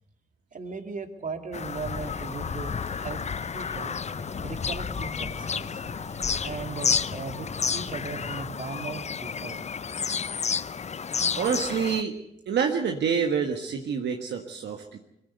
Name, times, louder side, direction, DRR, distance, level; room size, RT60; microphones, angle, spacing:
voice 1, 0.5-3.2 3.5-3.9 4.4-5.8 6.4-9.7, right 4 dB, 45° right, 6 dB, 2.6 m, -38 dB
Bird vocalization bird call bird song, 1.5-12.0, left 6 dB, 35° left, 0.7 m, -31 dB
sound 1, 1.8-8.5, left 3 dB, 85° left, 4.5 m, -43 dB
voice 2, 11.3-12.1 12.5-15.0, right 6 dB, 70° right, 3 dB, 1.6 m, -27 dB
22.0 x 15.5 x 8.0 m, 0.86 s
hypercardioid pair, 45°, 19 cm